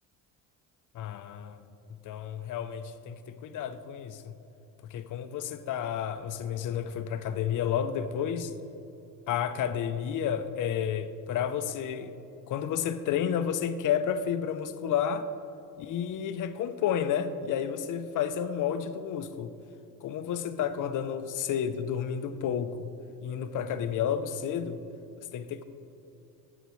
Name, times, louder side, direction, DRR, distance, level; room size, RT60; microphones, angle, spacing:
voice 1, 0.9-1.6 2.0-4.3 4.9-8.5 9.3-12.1 12.5-15.3 15.8-19.5 20.0-22.9 23.2-24.8 25.2-25.6, left 8 dB, 50° left, 10 dB, 0.6 m, -31 dB
13.5 x 7.9 x 3.1 m, 2.8 s
supercardioid pair, 90°, 39 cm